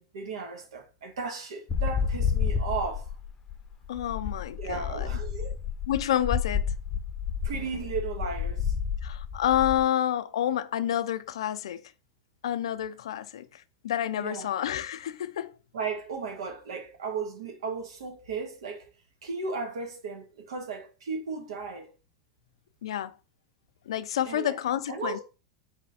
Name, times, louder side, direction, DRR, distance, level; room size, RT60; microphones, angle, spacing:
voice 1, 0.0-3.1 4.6-5.5 7.4-8.7 14.2-14.5 15.7-18.9 19.2-21.9 24.3-24.6 24.9-25.2, right 5 dB, 85° right, 1.5 m, -35 dB
sound 1, 1.7-9.8, left 7 dB, 20° left, 0.6 m, -30 dB
voice 2, 3.9-5.1 5.9-6.7 9.0-11.8 12.4-15.5 22.8-23.1 23.9-25.2, left 11 dB, 85° left, 0.4 m, -29 dB
4.1 x 3.1 x 4.1 m
supercardioid pair, 125°, 3 cm